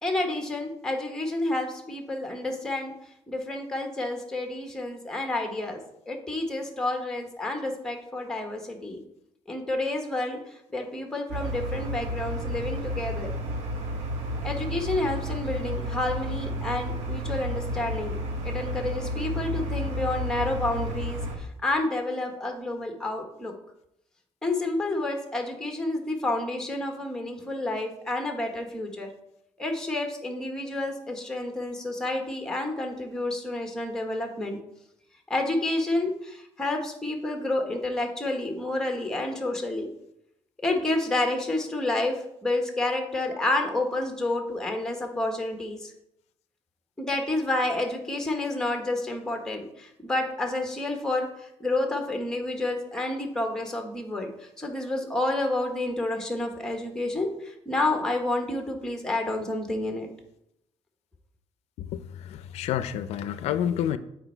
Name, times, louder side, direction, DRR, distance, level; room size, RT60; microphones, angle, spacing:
voice 1, 0.0-2.9 3.3-5.8 6.1-9.0 9.5-10.4 10.7-13.3 14.4-18.2 18.4-23.5 24.4-29.1 29.6-34.6 35.3-39.9 40.6-45.9 47.0-60.1, left 2 dB, 5° left, 3 dB, 1.2 m, -29 dB
sound 1, 11.3-21.3, equal, 85° right, 1.4 m, -31 dB
voice 2, 61.8-64.0, left 10 dB, 85° left, 13 dB, 0.4 m, -29 dB
8.1 x 4.4 x 4.4 m, 0.78 s
cardioid pair, 135°, 11 cm